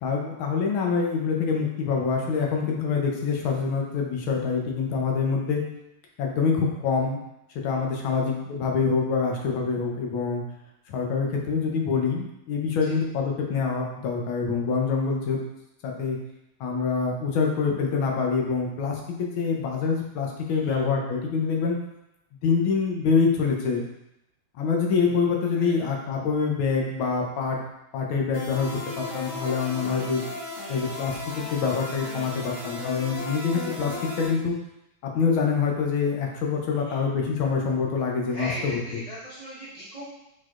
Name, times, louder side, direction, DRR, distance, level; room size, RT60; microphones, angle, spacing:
voice 1, 0.0-5.6 6.2-7.2 7.6-10.4 10.9-15.4 15.8-16.2 16.6-21.8 22.4-23.8 24.5-27.6 27.9-28.7 29.0-30.2 30.7-34.5 35.1-38.8, left 5 dB, 75° left, 0 dB, 1.5 m, -25 dB
voice 2, 20.5-20.8 25.5-25.8 36.7-37.0 38.3-40.2, equal, 60° right, -9 dB, 0.4 m, -39 dB
sound 1, 28.3-34.3, left 3 dB, 15° right, 1.2 m, -36 dB
4.5 x 4.4 x 2.4 m, 0.87 s
omnidirectional pair, 2.3 m